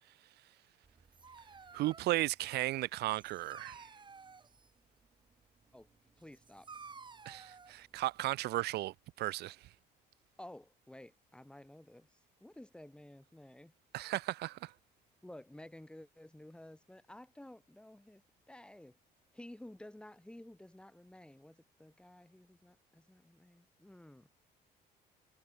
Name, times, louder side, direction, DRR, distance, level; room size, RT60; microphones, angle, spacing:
Dog, 0.8-8.7, right 5 dB, 25° right, 8.0 m, -55 dB
voice 1, 1.7-3.9 7.2-9.6 13.9-14.7, right 17 dB, 75° right, 0.9 m, -35 dB
voice 2, 6.2-6.7 10.4-13.7 15.2-19.0 19.3-24.3, left 1 dB, 5° left, 3.9 m, -53 dB
cardioid pair, 110°, 17 cm